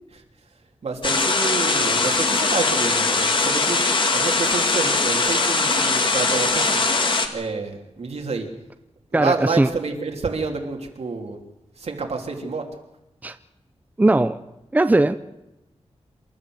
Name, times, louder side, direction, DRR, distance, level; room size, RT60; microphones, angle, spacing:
voice 1, 0.8-3.8 4.1-6.8 7.3-8.5 9.1-11.4 11.8-12.7, right 4 dB, 70° right, 3.2 m, -28 dB
sound 1, 1.0-7.3, left 3 dB, 45° left, 2.0 m, -21 dB
voice 2, 9.1-9.7 13.2-13.4 14.0-14.4 14.7-15.2, right 2 dB, 15° right, 0.6 m, -18 dB
28.0 x 13.0 x 7.9 m
wide cardioid pair, 145°, 11 cm